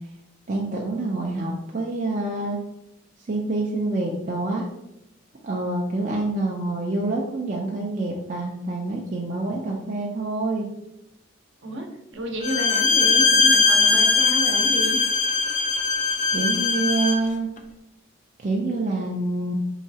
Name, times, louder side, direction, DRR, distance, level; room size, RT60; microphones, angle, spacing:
voice 1, 0.5-2.6 3.3-4.7 5.4-10.7 16.3-17.5 18.4-19.5, right 2 dB, 40° right, -2 dB, 0.4 m, -26 dB
voice 2, 12.1-15.0, right 1 dB, 65° right, 2 dB, 0.8 m, -30 dB
Bowed string instrument, 12.4-17.3, left 4 dB, 35° left, 0.3 m, -20 dB
4.7 x 3.1 x 2.7 m, 0.85 s
head